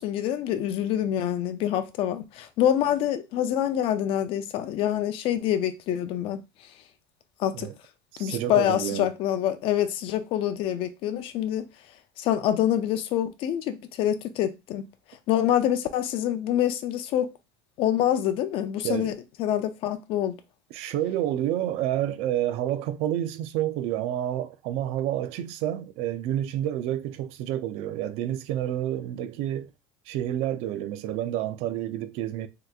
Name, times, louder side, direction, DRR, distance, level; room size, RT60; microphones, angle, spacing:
voice 1, 0.0-6.4 7.4-7.7 8.2-11.7 12.2-14.9 15.3-17.3 17.8-20.4, left 11 dB, 55° left, 0.5 m, -26 dB
voice 2, 8.1-9.1 18.8-19.1 20.7-29.7 30.1-32.5, right 12 dB, 65° right, 0.4 m, -29 dB
3.4 x 2.9 x 2.4 m
cardioid pair, 130°, 11 cm